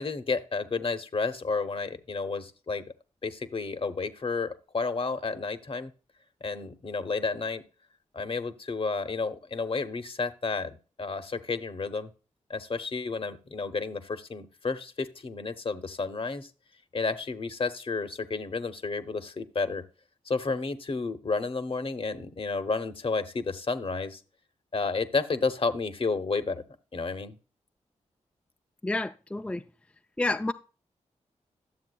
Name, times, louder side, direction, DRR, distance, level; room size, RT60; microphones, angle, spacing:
voice 1, 0.0-2.8 3.2-5.9 6.4-7.6 8.1-12.1 12.5-16.5 16.9-19.8 20.3-24.2 24.7-26.6 26.9-27.3, left 4 dB, 45° left, 0.9 m, -31 dB
voice 2, 28.8-29.6 30.2-30.5, left 2 dB, 10° left, 0.4 m, -29 dB
11.5 x 7.1 x 2.3 m
cardioid pair, 50°, 13 cm